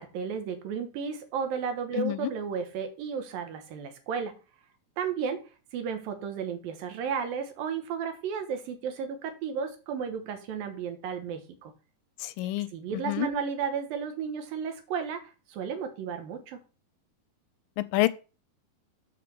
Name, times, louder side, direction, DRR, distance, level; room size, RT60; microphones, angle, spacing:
voice 1, 0.0-4.3 5.0-5.4 5.7-11.7 12.7-16.6, right 6 dB, 85° right, 3.1 m, -33 dB
voice 2, 2.0-2.3 12.2-12.7 12.9-13.3 17.8-18.1, left 17 dB, 85° left, 2.3 m, -27 dB
6.8 x 5.0 x 6.9 m
omnidirectional pair, 4.0 m